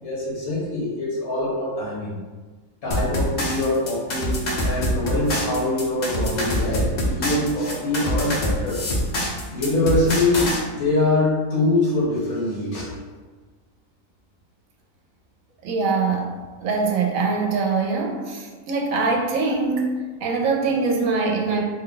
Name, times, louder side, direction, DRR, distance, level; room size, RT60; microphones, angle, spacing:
voice 1, 0.0-2.2 2.8-8.8 9.5-12.9, left 2 dB, 90° left, -8 dB, 1.9 m, -24 dB
sound 1, 2.9-10.6, left 1 dB, 50° left, 0.5 m, -25 dB
voice 2, 15.6-16.3 16.6-21.6, right 4 dB, 80° right, 1 dB, 1.0 m, -23 dB
3.5 x 2.2 x 3.9 m, 1.3 s
omnidirectional pair, 1.4 m